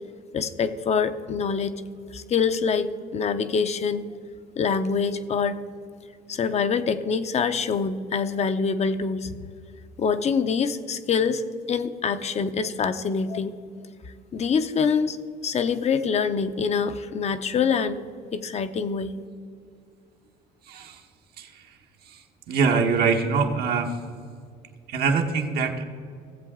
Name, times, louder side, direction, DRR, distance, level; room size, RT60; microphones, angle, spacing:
voice 1, 0.3-1.8 2.1-4.0 4.6-5.6 6.3-9.3 10.0-11.4 11.7-13.6 14.3-18.0 18.3-19.2, left 5 dB, 40° left, 11 dB, 0.6 m, -25 dB
voice 2, 20.7-21.0 21.4-21.5 22.5-24.0 24.9-25.8, right 5 dB, 70° right, 4 dB, 1.1 m, -23 dB
17.0 x 7.6 x 3.6 m, 2.3 s
cardioid pair, 110°, 17 cm